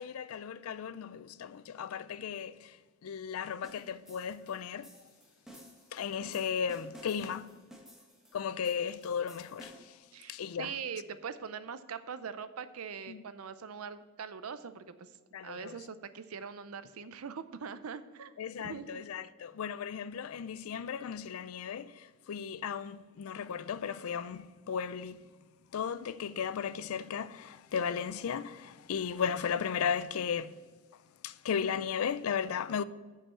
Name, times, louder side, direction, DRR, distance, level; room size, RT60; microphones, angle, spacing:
voice 1, 0.0-4.9 5.9-7.6 8.3-10.0 10.3-10.7 13.1-13.2 15.3-15.8 18.4-25.2 25.7-30.6 31.2-32.8, left 7 dB, 85° left, 0.4 m, -35 dB
sound 1, 3.6-10.0, equal, ahead, 1.2 m, -54 dB
voice 2, 10.1-15.1 15.4-19.0, right 6 dB, 90° right, 0.6 m, -42 dB
7.2 x 5.5 x 7.4 m
head